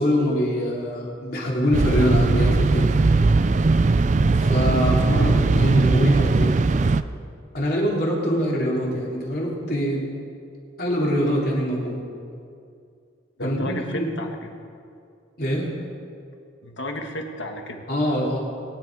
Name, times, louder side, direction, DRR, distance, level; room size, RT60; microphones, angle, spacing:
voice 1, 0.0-2.9 4.4-6.5 7.5-10.0 10.8-12.0 13.4-14.1 15.4-15.7 17.9-18.4, equal, 50° left, -3 dB, 3.4 m, -24 dB
sound 1, 1.7-7.0, right 3 dB, 40° right, 0.4 m, -19 dB
voice 2, 13.4-14.5 16.6-17.8, left 1 dB, 75° left, 3 dB, 1.7 m, -32 dB
22.0 x 10.5 x 4.8 m, 2.3 s
head